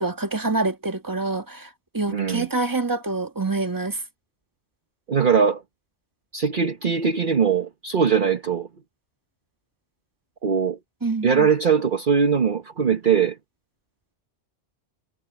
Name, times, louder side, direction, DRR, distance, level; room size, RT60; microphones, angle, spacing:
voice 1, 0.0-1.7 1.9-4.0 11.0-11.5, right 3 dB, 15° right, 1.7 m, -26 dB
voice 2, 2.1-2.5 5.1-5.6 6.3-8.7 10.4-10.8 11.2-13.4, right 6 dB, 50° right, 1.1 m, -21 dB
omnidirectional pair, 1.1 m